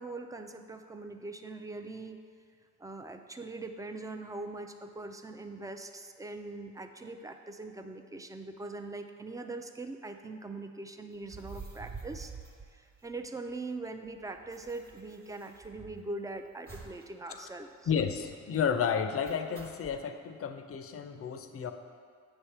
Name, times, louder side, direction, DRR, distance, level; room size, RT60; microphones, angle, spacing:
voice 1, 0.0-2.2 2.8-12.3 12.7-17.9, right 2 dB, 10° right, 6 dB, 0.4 m, -42 dB
sound 1, 11.2-13.5 13.8-13.9 14.1-16.2 16.7-17.1 17.4-17.5 17.8-18.3 19.2-20.0, right 4 dB, 30° right, 1.2 m, -48 dB
voice 2, 17.9-21.7, left 7 dB, 50° left, 8 dB, 0.5 m, -32 dB
7.8 x 3.4 x 5.7 m, 2.1 s
cardioid pair, 90°, 30 cm